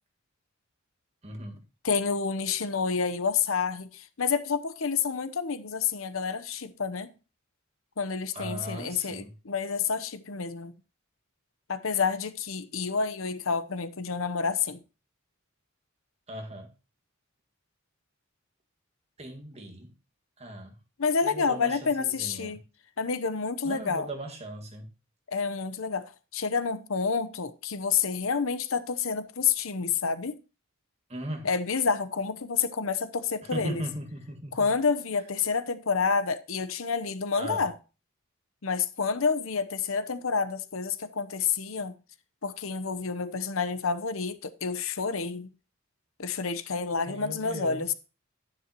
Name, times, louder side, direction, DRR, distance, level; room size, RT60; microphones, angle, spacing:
voice 1, 1.2-1.6 8.3-9.3 16.3-16.7 19.2-19.9 20.4-20.8 21.2-22.6 23.6-24.9 31.1-31.5 33.4-34.7 37.4-37.7 47.1-47.9, right 1 dB, 30° right, 1.9 m, -38 dB
voice 2, 1.8-7.1 8.0-10.7 11.7-14.8 21.0-22.6 23.0-24.1 25.3-30.4 31.4-33.8 34.5-37.7 38.6-41.9 42.4-45.5 46.2-47.9, left 5 dB, 80° left, 0.9 m, -29 dB
11.0 x 9.8 x 3.0 m
head